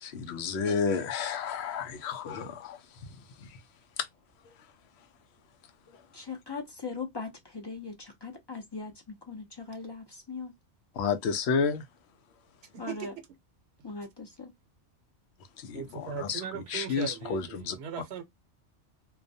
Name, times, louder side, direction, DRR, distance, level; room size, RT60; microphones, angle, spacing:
voice 1, 0.0-2.8 11.0-11.8 15.6-17.8, left 6 dB, 65° left, 0.8 m, -31 dB
voice 2, 6.1-10.5 12.8-13.1 13.8-14.5, left 4 dB, 30° left, 0.5 m, -40 dB
voice 3, 12.7-13.1 15.7-18.2, right 7 dB, 65° right, 0.9 m, -38 dB
2.3 x 2.2 x 2.5 m
omnidirectional pair, 1.3 m